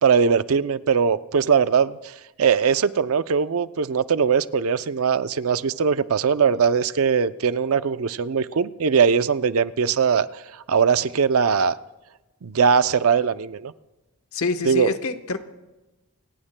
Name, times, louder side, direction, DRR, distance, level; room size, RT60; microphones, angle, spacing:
voice 1, 0.0-2.1 2.4-10.3 10.7-11.8 12.4-13.7 14.6-14.9, right 6 dB, 65° right, 14 dB, 0.5 m, -20 dB
voice 2, 14.3-15.4, left 3 dB, 65° left, 8 dB, 1.1 m, -26 dB
29.0 x 18.5 x 2.2 m, 1.1 s
head